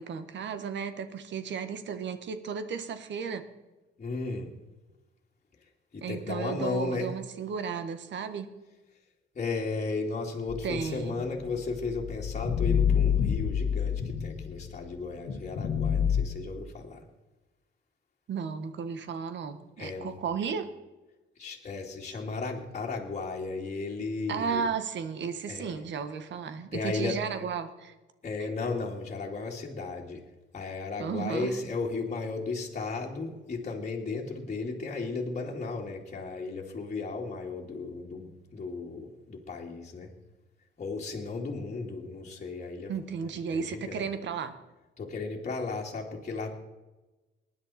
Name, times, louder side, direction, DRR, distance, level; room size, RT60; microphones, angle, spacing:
voice 1, 0.0-3.4 6.0-8.5 10.6-11.2 18.3-20.7 22.0-22.1 24.3-27.9 28.4-28.5 31.0-31.6 42.9-44.5, right 6 dB, 65° right, 10 dB, 1.4 m, -34 dB
voice 2, 4.0-4.5 5.9-7.1 9.3-17.0 19.8-20.2 21.4-24.6 25.5-25.8 26.7-27.2 28.2-30.2 30.5-40.1 40.8-44.1 45.0-46.5, left 3 dB, 35° left, -2 dB, 2.5 m, -35 dB
sound 1, 10.5-14.8 15.3-16.2, left 8 dB, 75° left, 1.7 m, -28 dB
19.5 x 10.5 x 4.3 m, 1.1 s
cardioid pair, 90°, 20 cm